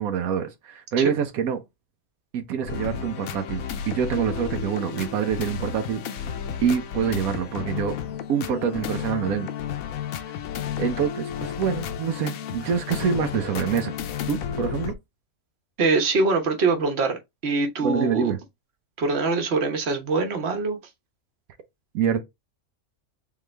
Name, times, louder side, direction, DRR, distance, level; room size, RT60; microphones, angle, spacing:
voice 1, 0.0-1.6 2.3-6.0 6.6-7.9 8.3-9.5 10.2-10.3 10.8-14.0 14.3-14.9 17.8-18.4 21.9-22.2, right 8 dB, 85° right, 1.2 m, -26 dB
sound 1, 2.7-14.9, left 8 dB, 75° left, 1.0 m, -32 dB
voice 2, 15.8-18.3 19.0-20.8, right 3 dB, 50° right, 1.3 m, -23 dB
3.9 x 3.5 x 3.2 m
omnidirectional pair, 1.5 m